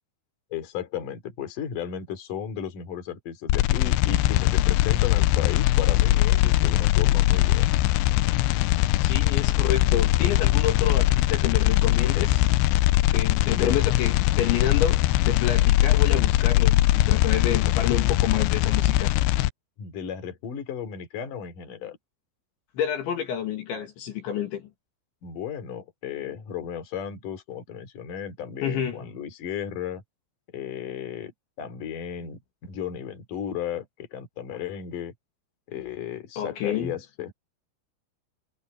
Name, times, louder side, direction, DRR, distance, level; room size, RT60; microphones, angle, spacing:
voice 1, 0.5-7.7 13.5-13.8 19.8-22.0 25.2-30.0 30.5-35.1 35.7-37.3, left 9 dB, 45° left, 4.2 m, -34 dB
sound 1, 3.5-19.5, left 16 dB, 90° left, 2.5 m, -21 dB
voice 2, 9.0-12.5 13.1-19.1 22.7-24.7 28.6-29.1 36.4-37.0, left 9 dB, 65° left, 4.5 m, -29 dB
omnidirectional pair, 5.9 m